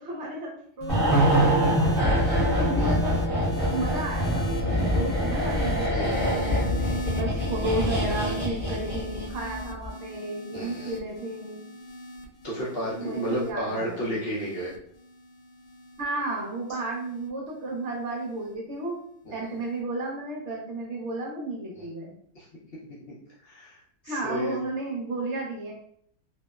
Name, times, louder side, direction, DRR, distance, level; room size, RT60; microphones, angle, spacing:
voice 1, 0.0-1.8 2.4-3.2 3.7-5.9 7.1-11.6 13.0-14.1 16.0-19.0 19.3-22.1 24.0-25.7, right 2 dB, 60° right, -2 dB, 0.8 m, -33 dB
sound 1, 0.8-17.3 18.2-18.5, left 1 dB, 80° left, 1.1 m, -37 dB
sound 2, 0.9-9.4 9.7-9.9, equal, ahead, 0.8 m, -25 dB
voice 2, 5.9-6.5 10.5-11.0 12.4-14.7 19.2-19.6 21.7-21.9 22.3-22.5 23.1-24.6, equal, 65° left, -6 dB, 0.6 m, -33 dB
2.8 x 2.0 x 2.2 m, 0.66 s
omnidirectional pair, 1.7 m